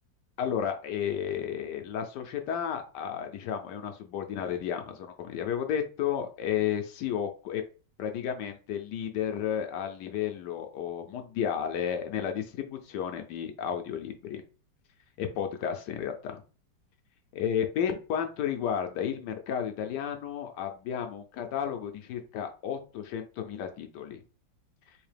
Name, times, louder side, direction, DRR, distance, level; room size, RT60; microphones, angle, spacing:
voice 1, 0.4-7.6 8.0-14.4 15.2-16.4 17.3-24.2, left 8 dB, 75° left, 5 dB, 1.1 m, -32 dB
3.6 x 2.8 x 3.3 m, 0.36 s
omnidirectional pair, 2.0 m